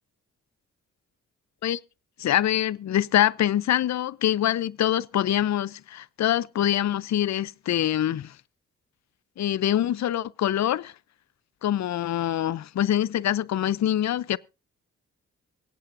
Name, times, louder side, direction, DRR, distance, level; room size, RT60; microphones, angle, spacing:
voice 1, 2.2-8.3 9.4-10.9 11.6-14.4, left 11 dB, 55° left, 0.6 m, -24 dB
25.0 x 8.4 x 2.6 m
supercardioid pair, 40°, 34 cm